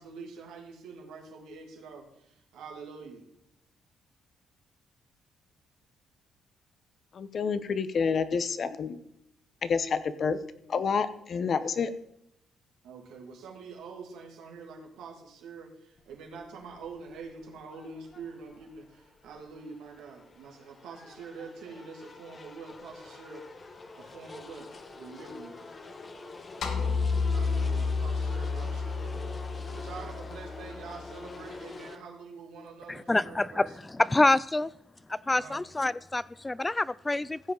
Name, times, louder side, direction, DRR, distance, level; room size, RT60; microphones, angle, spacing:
voice 1, 0.0-3.3 12.8-23.4 24.0-25.8 27.3-33.8 35.3-35.6, right 4 dB, 85° right, 1 dB, 2.6 m, -46 dB
voice 2, 7.1-9.0 9.6-10.4 10.7-11.9, left 5 dB, 50° left, 12 dB, 0.9 m, -28 dB
sound 1, 16.0-32.0, left 3 dB, 35° left, 1.3 m, -46 dB
sound 2, 26.6-31.0, left 4 dB, 70° left, 1.6 m, -30 dB
voice 3, 32.9-34.7 35.1-37.5, left 2 dB, 15° left, 19 dB, 0.3 m, -27 dB
15.5 x 7.8 x 4.0 m, 0.78 s
cardioid pair, 90°, 0 cm